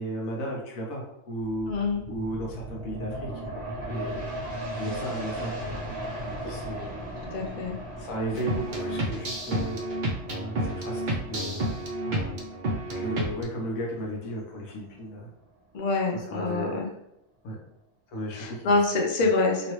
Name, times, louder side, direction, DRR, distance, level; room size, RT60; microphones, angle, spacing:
voice 1, 0.0-4.4 4.8-6.1 6.4-6.9 8.0-10.0 10.3-11.6 12.0-12.4 13.0-15.3 16.1-16.8 17.4-17.6 18.1-18.8, equal, 85° left, -2 dB, 1.3 m, -35 dB
sound 1, 1.4-14.7 15.1-15.2, right 1 dB, 10° right, 1.1 m, -38 dB
voice 2, 1.7-2.0 7.3-7.8 8.3-8.7 15.7-16.9 18.3-19.7, left 3 dB, 50° left, 0 dB, 0.5 m, -26 dB
sound 2, 8.4-13.4, right 1 dB, 65° right, 0.5 m, -30 dB
2.9 x 2.8 x 3.0 m, 0.80 s
omnidirectional pair, 1.4 m